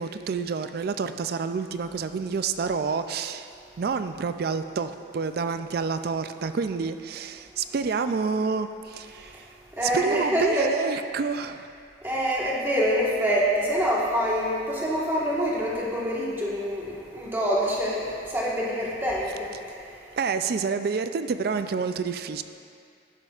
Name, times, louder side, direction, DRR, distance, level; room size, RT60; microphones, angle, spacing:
voice 1, 0.0-3.5 3.8-9.5 9.8-11.7 20.2-22.4, right 5 dB, 50° right, 10 dB, 0.3 m, -28 dB
voice 2, 9.7-10.6 12.0-19.5, equal, 10° right, -5 dB, 1.4 m, -26 dB
12.0 x 10.5 x 2.4 m, 2.4 s
head